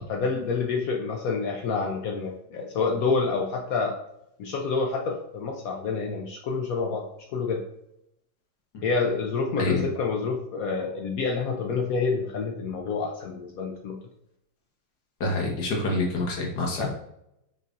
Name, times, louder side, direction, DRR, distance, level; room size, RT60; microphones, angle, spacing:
voice 1, 0.1-4.0 4.4-7.6 8.8-13.9 16.8-16.9, left 4 dB, 75° left, 1 dB, 0.8 m, -28 dB
voice 2, 15.2-16.9, left 2 dB, 60° left, -1 dB, 1.6 m, -27 dB
5.4 x 3.8 x 2.5 m, 0.79 s
omnidirectional pair, 2.1 m